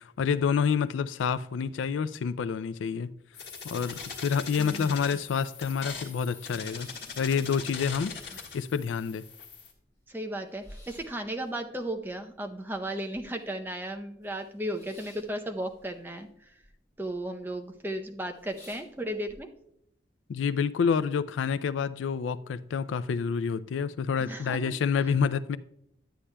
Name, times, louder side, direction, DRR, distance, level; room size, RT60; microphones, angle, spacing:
voice 1, 0.0-3.1 3.6-6.9 7.2-8.1 8.5-9.2 20.3-25.6, left 6 dB, 85° left, 0.3 m, -28 dB
sound 1, 3.3-9.7, left 5 dB, 60° left, 1.5 m, -41 dB
voice 2, 4.6-4.9 10.1-16.3 17.0-19.5 24.3-24.6, right 1 dB, 10° right, 0.6 m, -35 dB
sound 2, 5.8-7.8 8.1-8.8 9.2-9.3 9.5-13.6 13.9-16.7 17.0-17.5 17.9-18.0 18.3-19.4, left 1 dB, 15° left, 3.3 m, -55 dB
11.5 x 8.5 x 2.2 m
head